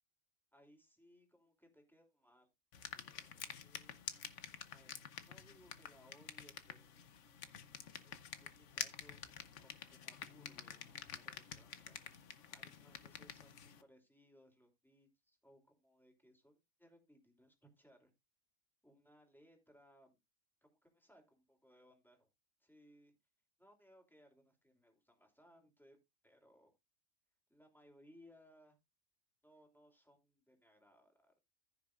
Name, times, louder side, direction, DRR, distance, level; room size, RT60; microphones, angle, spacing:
voice 1, 0.5-2.5 2.9-4.0 4.7-7.0 8.0-9.2 9.6-12.0 12.5-18.1 18.8-20.2 20.6-22.3 22.6-23.2 23.6-26.0 26.2-26.7 27.5-28.8 29.4-31.4, equal, ahead, 2 dB, 2.9 m, -66 dB
sound 1, 2.7-13.8, left 8 dB, 65° left, 1.2 m, -49 dB
15.0 x 6.6 x 2.4 m, 0.22 s
omnidirectional pair, 1.4 m